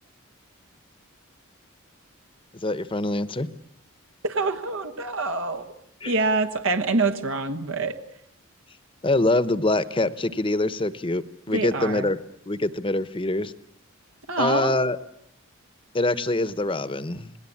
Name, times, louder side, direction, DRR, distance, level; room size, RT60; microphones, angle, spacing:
voice 1, 2.5-3.5 6.0-6.1 9.0-12.2 12.5-13.5 14.4-15.0 15.9-17.3, left 2 dB, 25° left, 14 dB, 1.0 m, -24 dB
voice 2, 4.2-5.7 6.0-8.0 11.5-12.1 14.3-14.7, right 3 dB, 75° right, 6 dB, 1.4 m, -25 dB
27.5 x 19.0 x 8.6 m, 0.75 s
head